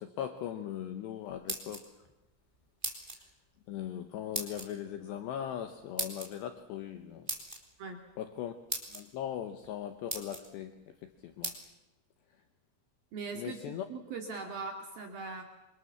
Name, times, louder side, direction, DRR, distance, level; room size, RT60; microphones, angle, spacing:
voice 1, 0.0-1.9 3.7-7.3 8.2-8.5 8.9-11.5 13.4-13.9, left 10 dB, 70° left, 7 dB, 3.0 m, -39 dB
sound 1, 1.3-2.1 2.8-3.2 4.3-4.7 6.0-6.3 7.3-7.6 8.3-8.4 8.7-9.0 9.6-9.7 10.1-10.5 11.4-11.6, right 2 dB, 10° right, 3.0 m, -37 dB
voice 2, 13.1-15.4, right 4 dB, 55° right, 3 dB, 3.6 m, -40 dB
27.0 x 25.0 x 7.3 m, 0.96 s
omnidirectional pair, 5.8 m